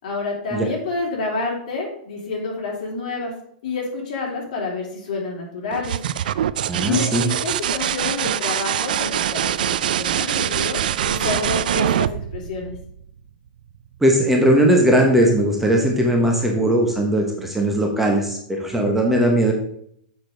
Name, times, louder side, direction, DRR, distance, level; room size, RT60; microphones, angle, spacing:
voice 1, 0.0-3.3 3.6-6.0 6.8-10.8 11.0-12.7, left 3 dB, 65° left, -2 dB, 3.5 m, -28 dB
sound 1, 5.7-13.3 15.1-15.6, right 10 dB, 80° right, 0.4 m, -24 dB
voice 2, 6.7-7.2 14.0-19.5, right 1 dB, 5° right, 1 dB, 1.0 m, -18 dB
7.0 x 6.6 x 3.9 m, 0.68 s
supercardioid pair, 150°, 5 cm